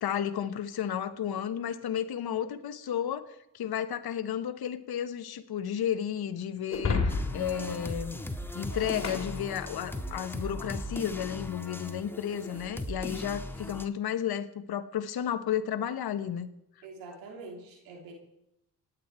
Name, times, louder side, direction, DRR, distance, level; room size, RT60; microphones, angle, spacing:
voice 1, 0.0-3.3 3.5-8.2 8.5-16.5, left 9 dB, 55° left, 9 dB, 1.2 m, -32 dB
Shatter, 6.7-10.2, left 4 dB, 35° left, 3.0 m, -33 dB
sound 1, 7.1-13.8, left 1 dB, 5° left, 1.5 m, -38 dB
voice 2, 7.5-8.0 8.6-8.8 9.2-9.3 16.8-18.1, right 3 dB, 85° right, 1 dB, 3.4 m, -46 dB
27.5 x 9.4 x 4.4 m, 0.82 s
hypercardioid pair, 45°, 44 cm